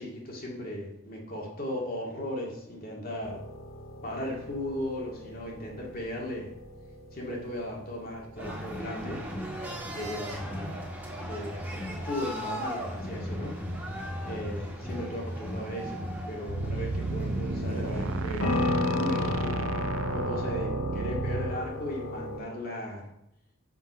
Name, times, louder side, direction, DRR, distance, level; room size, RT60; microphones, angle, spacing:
voice 1, 0.0-3.4 4.0-6.5 7.1-9.2 9.9-10.8 11.2-11.6 12.0-13.5 14.2-16.0 16.3-18.5 18.8-19.7 20.1-23.1, left 1 dB, 45° left, -2 dB, 2.3 m, -36 dB
sound 1, 3.2-22.4, left 2 dB, 75° left, 1.0 m, -37 dB
sound 2, 8.4-18.7, equal, 10° right, 1.8 m, -36 dB
sound 3, 16.5-21.6, right 4 dB, 75° right, 0.5 m, -33 dB
6.9 x 5.9 x 5.4 m, 0.83 s
head